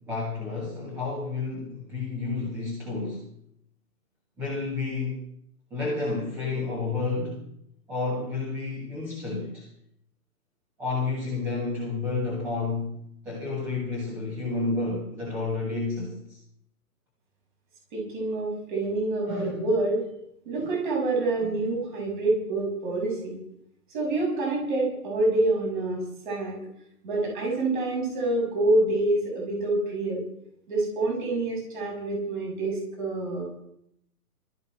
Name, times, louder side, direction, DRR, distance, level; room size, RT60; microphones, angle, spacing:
voice 1, 0.0-3.3 4.4-5.2 5.7-7.4 7.9-9.7 10.8-13.0 13.2-16.4 19.2-19.6 20.6-20.7 21.3-21.6, left 3 dB, 5° right, -5 dB, 1.4 m, -30 dB
voice 2, 17.9-20.1 20.5-23.4 23.9-26.6 27.0-30.2 30.7-33.5, right 2 dB, 30° right, -1 dB, 7.0 m, -27 dB
21.0 x 13.5 x 4.5 m, 0.73 s
hypercardioid pair, 175°, 47 cm